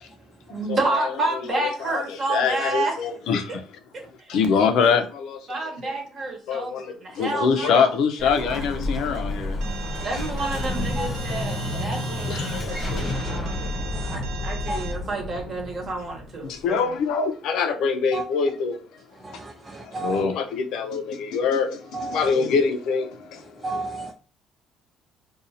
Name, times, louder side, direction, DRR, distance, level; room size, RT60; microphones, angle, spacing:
voice 1, 0.5-2.9 4.2-4.3 5.5-7.9 8.2-9.0 10.0-13.5 14.0-16.9 19.6-19.7, right 2 dB, 35° right, 1.0 m, -30 dB
voice 2, 1.0-3.6 4.3-5.4 5.8-5.9 6.5-9.6 11.4-13.4 14.1-14.3 16.4-18.8 19.8-23.6, left 5 dB, 65° left, 0.6 m, -25 dB
Explosion, 8.2-16.9, left 1 dB, 30° left, 0.7 m, -30 dB
Alarm, 9.6-14.9, right 7 dB, 75° right, 0.5 m, -39 dB
voice 3, 19.2-20.2 21.9-22.3 23.6-24.1, right 2 dB, 15° right, 0.3 m, -33 dB
2.6 x 2.3 x 4.1 m
cardioid pair, 145°, 0 cm